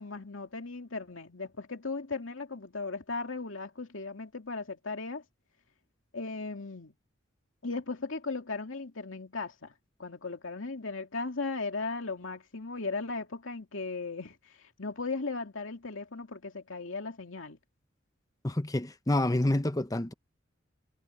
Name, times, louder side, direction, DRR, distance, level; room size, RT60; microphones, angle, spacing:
voice 1, 0.0-5.2 6.1-6.9 7.6-9.7 10.0-17.6, left 3 dB, 80° left, 2.4 m, -37 dB
voice 2, 18.4-20.1, left 1 dB, 20° left, 0.8 m, -28 dB
head